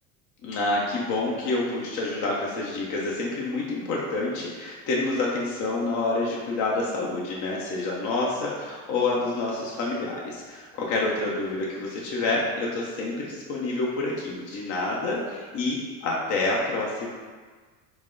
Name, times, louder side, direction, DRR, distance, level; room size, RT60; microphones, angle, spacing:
voice 1, 0.4-17.1, left 2 dB, 40° left, -4 dB, 0.8 m, -28 dB
4.5 x 2.1 x 3.7 m, 1.5 s
hypercardioid pair, 90°, 45 cm